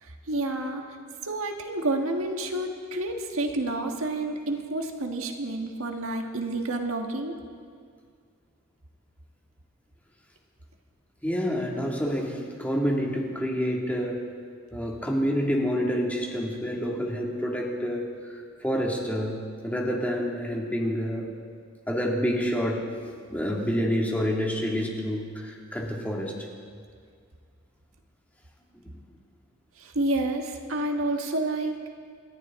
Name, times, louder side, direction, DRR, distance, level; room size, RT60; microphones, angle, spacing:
voice 1, 0.0-0.8 1.2-7.4 29.8-31.7, right 2 dB, 80° right, 4 dB, 1.5 m, -29 dB
voice 2, 11.2-14.2 14.7-21.3 21.9-22.9 23.3-26.5, equal, 5° left, -2 dB, 2.1 m, -28 dB
28.0 x 13.5 x 3.7 m, 2.1 s
head